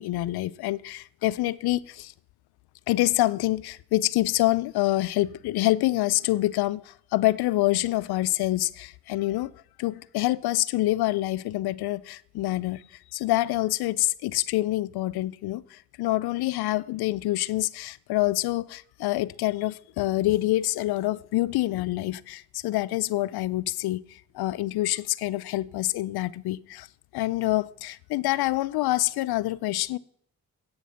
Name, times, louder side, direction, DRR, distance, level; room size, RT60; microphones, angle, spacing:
voice 1, 0.0-2.1 2.9-9.5 9.8-26.9 27.1-30.0, left 17 dB, 80° left, 0.5 m, -26 dB
11.0 x 8.6 x 5.7 m
supercardioid pair, 45°, 37 cm